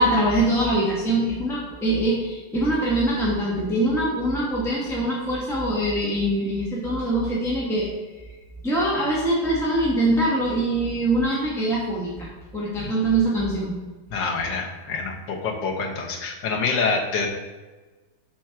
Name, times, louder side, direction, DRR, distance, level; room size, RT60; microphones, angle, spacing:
voice 1, 0.0-7.9 8.6-12.3 12.5-13.7, right 1 dB, ahead, -6 dB, 1.2 m, -23 dB
voice 2, 14.1-17.3, left 4 dB, 75° left, 0 dB, 1.8 m, -26 dB
6.2 x 4.5 x 5.8 m, 1.3 s
omnidirectional pair, 2.0 m